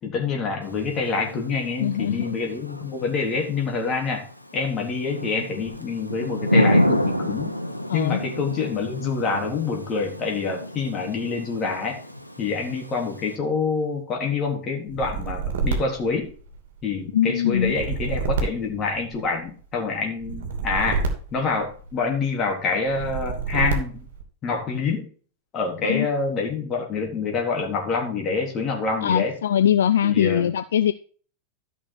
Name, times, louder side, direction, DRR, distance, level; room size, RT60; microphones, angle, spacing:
voice 1, 0.0-4.3 4.5-7.5 7.9-12.0 12.4-16.3 16.8-21.0 21.3-24.1 24.4-25.1 25.5-29.3 30.0-30.5, left 4 dB, 30° left, 1 dB, 3.6 m, -26 dB
Thunder / Rain, 0.6-13.4, equal, 90° right, 0.8 m, -29 dB
voice 2, 1.8-2.3 7.9-8.2 17.1-17.7 25.8-26.1 29.0-30.9, left 10 dB, 65° left, 12 dB, 0.5 m, -21 dB
sound 1, 14.9-16.9 17.5-19.5 20.2-22.1 22.9-24.2, right 4 dB, 55° right, 2.8 m, -28 dB
13.0 x 6.1 x 4.5 m, 0.41 s
figure-of-eight pair, 90°, 0 cm